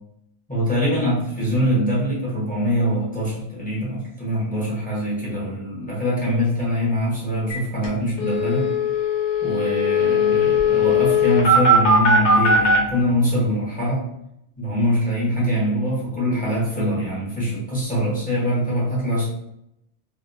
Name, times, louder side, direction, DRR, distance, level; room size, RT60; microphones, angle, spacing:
voice 1, 0.5-8.7 9.4-14.0 14.6-19.3, equal, 10° left, -8 dB, 1.1 m, -23 dB
sound 1, 7.5-7.6 7.8-7.9 8.2-12.8, left 2 dB, 90° left, 1.2 m, -18 dB
2.8 x 2.6 x 2.6 m, 0.79 s
omnidirectional pair, 1.2 m